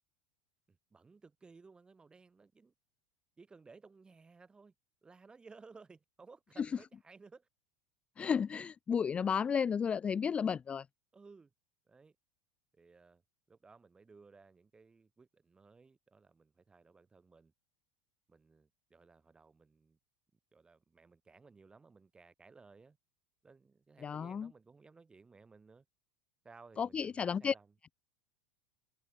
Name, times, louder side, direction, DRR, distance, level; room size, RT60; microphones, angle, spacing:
voice 1, 0.7-2.7 3.4-4.7 5.0-7.5 11.1-11.5 11.9-12.2 12.7-13.2 13.5-17.5 18.3-20.0 20.5-23.0 23.4-25.9 26.4-27.7, right 4 dB, 15° right, 5.3 m, -59 dB
voice 2, 8.2-10.9 24.0-24.5 26.8-27.5, left 7 dB, 20° left, 0.4 m, -33 dB
supercardioid pair, 115°, 6 cm